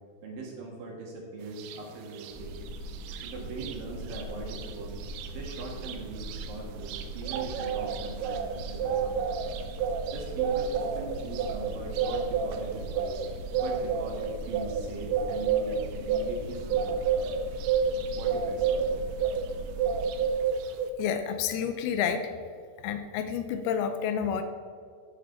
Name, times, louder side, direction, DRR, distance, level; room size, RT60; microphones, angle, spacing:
voice 1, 0.2-2.7 3.2-5.0 5.3-9.4 10.1-13.2 13.6-17.0 18.1-18.9, right 3 dB, 60° right, -1 dB, 3.0 m, -41 dB
sound 1, 1.6-1.8 2.1-3.8 4.1-4.2 4.5-19.5 19.8-20.9, right 6 dB, 85° right, 3.0 m, -30 dB
sound 2, 2.3-20.3, right 2 dB, 10° left, 2.0 m, -41 dB
voice 2, 21.0-22.3 22.8-24.4, left 8 dB, 90° left, 8 dB, 2.2 m, -29 dB
13.5 x 7.7 x 3.9 m, 2.2 s
omnidirectional pair, 5.1 m